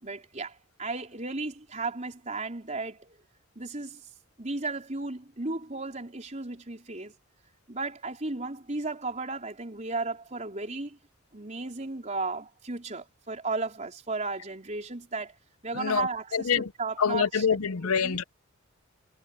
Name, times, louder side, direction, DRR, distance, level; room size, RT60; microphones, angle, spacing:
voice 1, 0.0-3.2 3.6-4.0 4.4-7.1 7.7-11.0 11.3-15.4 15.6-17.5 17.8-18.2, right 3 dB, 35° right, 4.0 m, -34 dB
voice 2, 15.7-16.7 17.0-18.2, left 6 dB, 85° left, 0.7 m, -26 dB
head